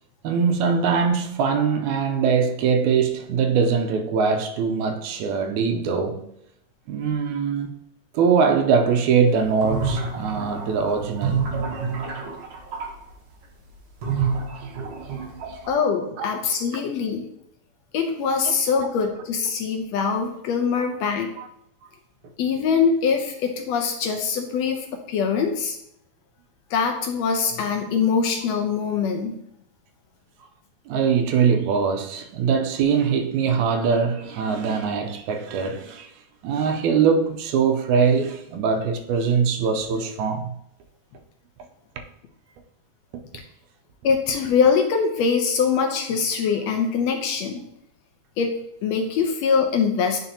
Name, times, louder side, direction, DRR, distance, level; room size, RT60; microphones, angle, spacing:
voice 1, 0.2-6.3 6.9-7.8 8.1-11.5 14.6-14.7 15.5-15.6 16.2-16.3 20.8-20.9 21.4-21.5 30.9-36.1 36.4-40.5, right 6 dB, 85° right, 2.1 m, -22 dB
sound 1, 9.4-12.9 14.0-15.7, right 5 dB, 55° right, 1.4 m, -28 dB
voice 2, 15.7-17.2 17.9-21.3 22.4-25.8 26.7-29.4 44.0-47.6 48.4-50.2, left 6 dB, 75° left, 1.7 m, -23 dB
9.9 x 4.3 x 2.8 m
omnidirectional pair, 3.4 m